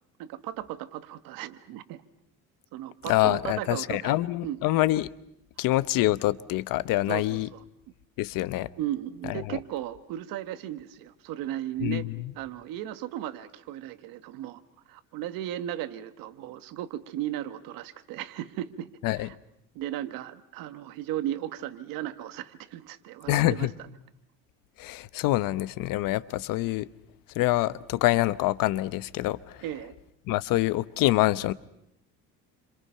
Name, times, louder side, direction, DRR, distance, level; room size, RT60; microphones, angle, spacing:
voice 1, 0.2-2.0 2.7-4.2 4.4-4.6 7.1-7.6 8.8-12.0 12.4-14.6 14.9-19.3 19.7-23.9 29.6-29.9, right 12 dB, 75° right, 1.6 m, -36 dB
voice 2, 3.1-5.1 5.6-7.5 8.2-8.7 9.2-9.6 11.8-12.3 19.0-19.3 23.3-23.7 24.8-26.9 27.3-29.6 30.3-31.5, left 17 dB, 75° left, 1.0 m, -26 dB
29.0 x 26.5 x 5.7 m
cardioid pair, 135°, 34 cm